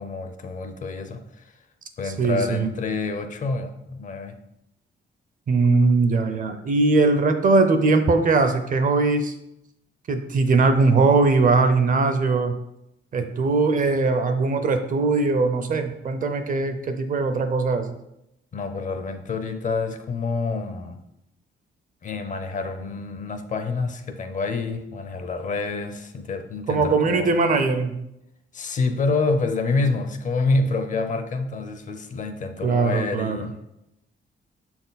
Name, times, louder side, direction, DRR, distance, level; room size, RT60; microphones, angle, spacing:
voice 1, 0.0-1.4 2.0-4.4 18.5-21.0 22.0-27.4 28.5-33.5, left 3 dB, 40° left, 7 dB, 0.6 m, -27 dB
voice 2, 2.0-2.7 5.5-9.3 10.1-12.5 13.1-17.8 26.7-27.9 32.6-33.5, right 3 dB, 40° right, 7 dB, 0.6 m, -20 dB
7.3 x 4.4 x 4.0 m, 0.83 s
wide cardioid pair, 180°, 20 cm